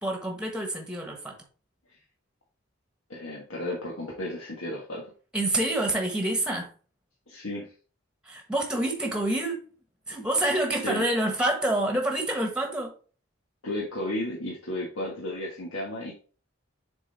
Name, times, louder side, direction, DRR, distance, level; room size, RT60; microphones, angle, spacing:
voice 1, 0.0-1.4 5.3-6.7 8.2-9.6 10.1-12.9, right 1 dB, 5° right, 1.3 m, -27 dB
voice 2, 3.1-5.1 7.3-7.7 10.8-11.0 13.6-16.1, left 1 dB, 80° left, 1.4 m, -33 dB
7.0 x 3.8 x 4.0 m
head